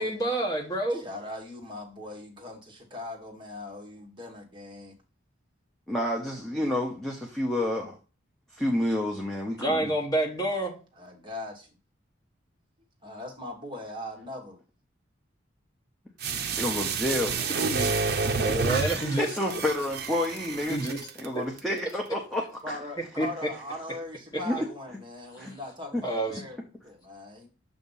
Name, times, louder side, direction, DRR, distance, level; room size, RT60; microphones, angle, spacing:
voice 1, 0.0-1.0 9.6-10.8 17.7-17.9 18.4-19.3 20.7-21.0 23.2-23.3 26.0-26.4, right 1 dB, 20° left, 1.2 m, -28 dB
voice 2, 0.9-4.9 11.0-11.7 13.0-14.6 22.6-27.5, left 1 dB, 25° right, 1.2 m, -40 dB
voice 3, 5.9-8.0 8.5-9.9 16.6-17.3 18.5-20.8 21.2-22.8 24.5-24.6 25.4-25.5 25.9-26.0, left 1 dB, ahead, 0.7 m, -29 dB
sound 1, 16.2-21.2 21.6-21.7, right 4 dB, 50° right, 0.6 m, -29 dB
7.1 x 2.8 x 5.4 m
head